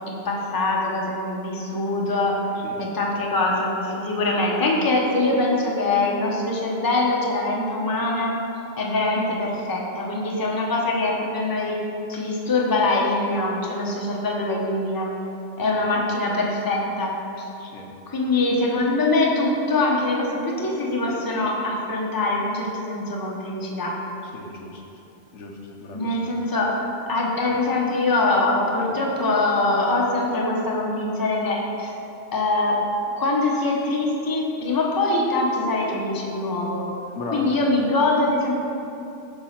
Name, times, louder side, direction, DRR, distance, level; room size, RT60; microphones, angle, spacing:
voice 1, 0.1-2.4 2.8-8.4 8.8-11.8 12.1-15.1 15.6-17.5 18.1-24.0 25.9-31.9 32.3-32.8 33.2-36.8 37.3-38.6, left 2 dB, 20° left, -2 dB, 0.7 m, -23 dB
voice 2, 17.6-17.9 24.3-24.8 25.3-26.2 37.2-37.5, left 2 dB, 80° left, 0 dB, 1.1 m, -36 dB
8.4 x 2.9 x 5.8 m, 2.8 s
omnidirectional pair, 1.2 m